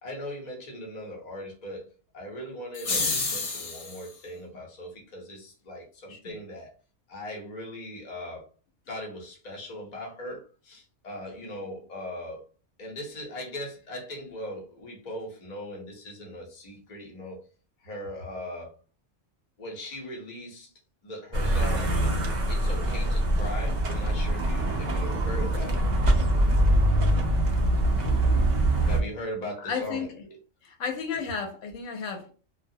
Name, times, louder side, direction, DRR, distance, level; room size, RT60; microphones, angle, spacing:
voice 1, 0.0-1.9 2.1-6.7 7.1-8.5 8.9-12.4 12.8-17.4 17.8-18.7 19.6-20.7 21.0-22.0 22.5-25.9 28.8-30.1, left 1 dB, 40° left, 0.8 m, -39 dB
sound 1, 2.7-4.1, left 3 dB, 65° left, 0.3 m, -29 dB
sound 2, 21.3-29.0, right 1 dB, 75° right, 0.4 m, -24 dB
voice 2, 29.6-30.1 30.6-32.3, left 5 dB, 85° left, 1.0 m, -33 dB
2.3 x 2.1 x 2.6 m
omnidirectional pair, 1.3 m